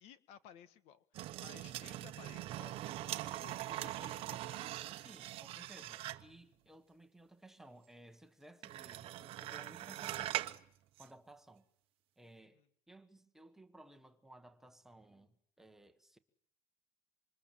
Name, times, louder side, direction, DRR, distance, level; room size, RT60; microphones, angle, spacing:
voice 1, 0.0-5.0 12.5-12.7, left 9 dB, 50° left, 1.5 m, -58 dB
sound 1, 1.1-6.4 8.6-10.6 11.0-11.1, right 15 dB, 45° right, 1.1 m, -42 dB
voice 2, 1.7-2.2 4.9-10.6 11.0-11.6 12.2-16.2, right 1 dB, 5° right, 1.4 m, -59 dB
27.5 x 26.0 x 7.5 m
cardioid pair, 170°, 14 cm